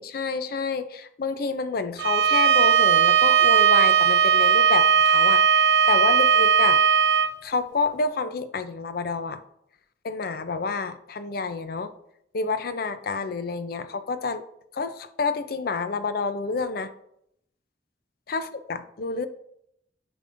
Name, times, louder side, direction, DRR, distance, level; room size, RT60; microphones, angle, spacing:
voice 1, 0.0-6.8 7.4-9.4 10.0-11.9 12.3-14.4 14.7-16.9 18.3-19.3, left 4 dB, 55° left, 11 dB, 0.5 m, -29 dB
Bowed string instrument, 2.0-7.3, right 6 dB, 75° right, 0.4 m, -18 dB
9.1 x 5.2 x 2.6 m, 0.74 s
head